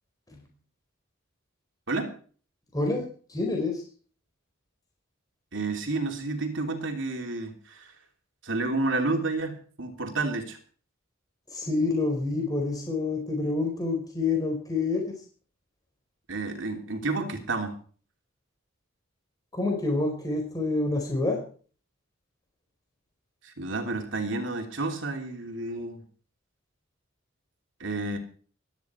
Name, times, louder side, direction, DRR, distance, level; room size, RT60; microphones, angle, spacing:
voice 1, 2.7-3.8 11.5-15.0 19.5-21.4, left 3 dB, 20° left, 1 dB, 4.5 m, -27 dB
voice 2, 5.5-7.9 8.4-10.6 16.3-17.8 23.4-26.0 27.8-28.2, right 3 dB, 65° right, 4 dB, 3.2 m, -30 dB
17.0 x 13.5 x 4.7 m, 0.42 s
head